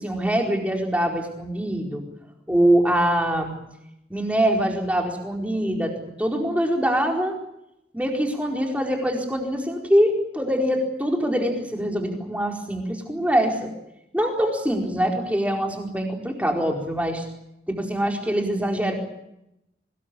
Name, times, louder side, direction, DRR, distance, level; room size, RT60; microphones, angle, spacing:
voice 1, 0.0-2.0 2.5-3.5 4.1-7.4 7.9-13.7 14.1-17.2 17.7-18.9, equal, 10° right, 2 dB, 4.4 m, -23 dB
24.0 x 20.5 x 8.5 m, 0.85 s
head